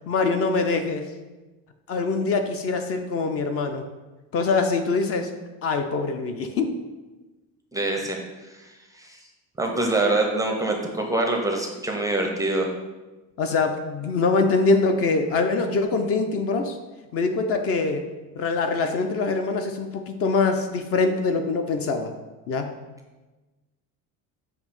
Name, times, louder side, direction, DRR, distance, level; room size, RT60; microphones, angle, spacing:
voice 1, 0.1-1.1 1.9-3.8 4.3-5.3 5.6-6.7 13.4-16.8 17.1-18.0 18.4-22.1 22.5-22.7, left 3 dB, 45° left, 7 dB, 0.5 m, -24 dB
voice 2, 7.7-8.2 8.7-9.2 9.6-12.7, right 2 dB, 10° right, 2 dB, 0.5 m, -25 dB
7.0 x 2.7 x 5.4 m, 1.2 s
cardioid pair, 155°, 34 cm